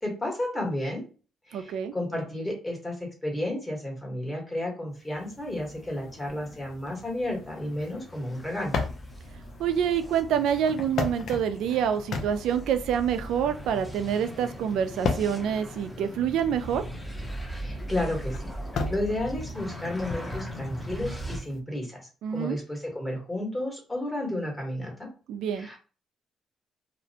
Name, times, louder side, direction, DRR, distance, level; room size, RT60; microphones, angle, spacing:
voice 1, 0.0-1.0 1.5-2.9 3.2-8.8 17.5-18.5 18.9-25.1 25.5-25.8, left 1 dB, 20° left, 0 dB, 1.3 m, -32 dB
voice 2, 1.5-1.9 9.6-16.8 22.2-22.6 25.3-25.7, right 8 dB, 85° right, 9 dB, 0.3 m, -27 dB
sound 1, 5.0-21.6, left 4 dB, 70° left, 0.5 m, -38 dB
sound 2, 7.0-21.4, right 1 dB, ahead, 0.7 m, -40 dB
2.4 x 2.1 x 2.7 m, 0.36 s
cardioid pair, 90°, 0 cm